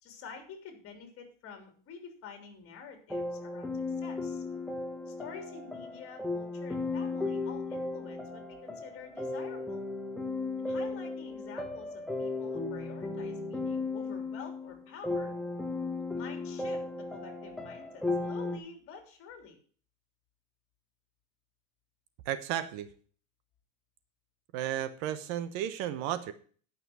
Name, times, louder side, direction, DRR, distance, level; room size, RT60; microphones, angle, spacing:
voice 1, 0.0-4.4 5.1-9.8 10.6-15.3 16.1-19.6, left 6 dB, 35° left, 5 dB, 3.3 m, -49 dB
sound 1, 3.1-18.6, left 3 dB, ahead, 1.5 m, -35 dB
voice 2, 22.2-22.9 24.5-26.3, right 11 dB, 50° right, 12 dB, 1.0 m, -33 dB
12.0 x 5.9 x 6.0 m, 0.44 s
supercardioid pair, 135°, 38 cm